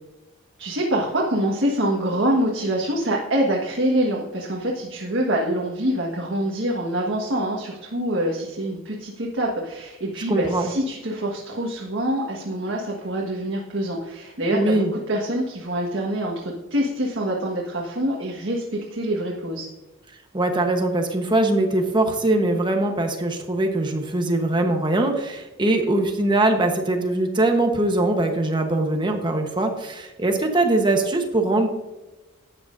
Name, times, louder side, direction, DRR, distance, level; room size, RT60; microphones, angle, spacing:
voice 1, 0.6-19.7, right 1 dB, 65° right, -3 dB, 1.6 m, -25 dB
voice 2, 10.3-10.7 14.5-14.9 20.3-31.7, right 2 dB, 20° right, 3 dB, 1.1 m, -22 dB
13.0 x 8.9 x 2.6 m, 1.0 s
head